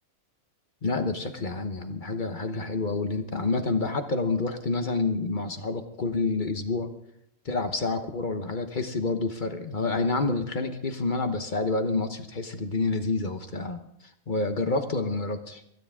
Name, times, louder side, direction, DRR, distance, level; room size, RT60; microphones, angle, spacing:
voice 1, 0.8-6.9 7.4-13.8 14.3-15.6, left 3 dB, 40° left, 7 dB, 1.1 m, -28 dB
29.5 x 9.9 x 3.6 m, 0.75 s
omnidirectional pair, 1.5 m